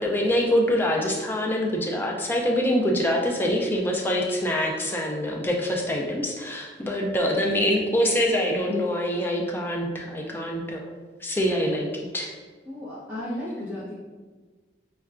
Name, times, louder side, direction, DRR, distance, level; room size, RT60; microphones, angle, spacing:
voice 1, 0.0-11.0 11.2-12.3, equal, 10° left, 0 dB, 0.3 m, -25 dB
voice 2, 12.7-13.9, left 1 dB, 10° right, -10 dB, 0.7 m, -34 dB
5.3 x 2.2 x 2.4 m, 1.4 s
head